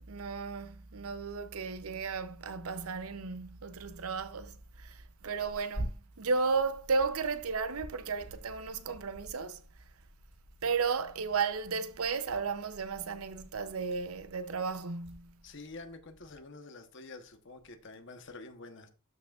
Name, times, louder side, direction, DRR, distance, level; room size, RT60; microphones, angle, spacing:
voice 1, 0.1-9.6 10.6-15.3, right 5 dB, 80° right, 0.7 m, -34 dB
Tearing, 3.7-16.4, right 1 dB, 60° right, 4.5 m, -49 dB
voice 2, 15.4-18.9, left 3 dB, 55° left, 1.2 m, -48 dB
12.5 x 6.0 x 2.5 m
head